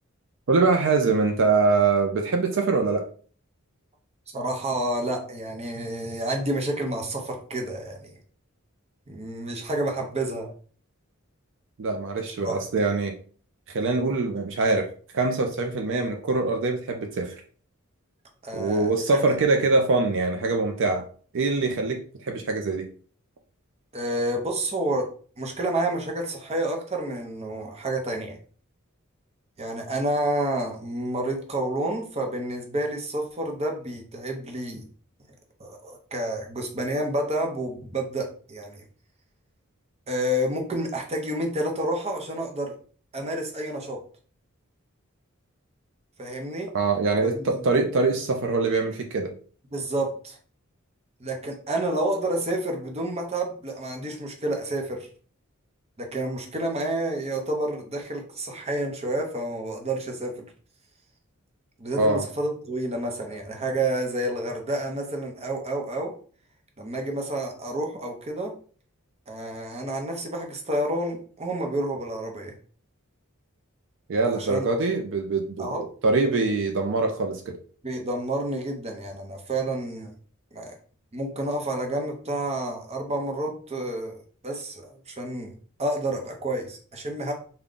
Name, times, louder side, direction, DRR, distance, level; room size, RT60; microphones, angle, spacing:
voice 1, 0.5-3.0 11.8-13.1 13.7-14.9 15.1-17.3 18.5-21.0 21.3-22.9 46.7-49.3 62.0-62.3 74.1-77.6, right 3 dB, 60° right, 3 dB, 0.5 m, -23 dB
voice 2, 4.3-8.1 9.1-10.5 12.4-12.5 18.4-19.2 23.9-25.1 25.4-28.4 29.6-34.8 35.6-38.8 40.1-42.7 43.1-44.0 46.2-46.7 47.3-47.6 49.7-50.4 51.2-55.1 56.0-60.5 61.8-66.1 66.8-68.5 69.3-72.5 74.3-74.6 75.6-75.9 77.8-80.1 80.5-80.8 81.1-84.2 84.4-85.5 85.8-87.3, right 1 dB, 30° right, 2 dB, 0.7 m, -29 dB
3.6 x 2.2 x 3.7 m, 0.43 s
head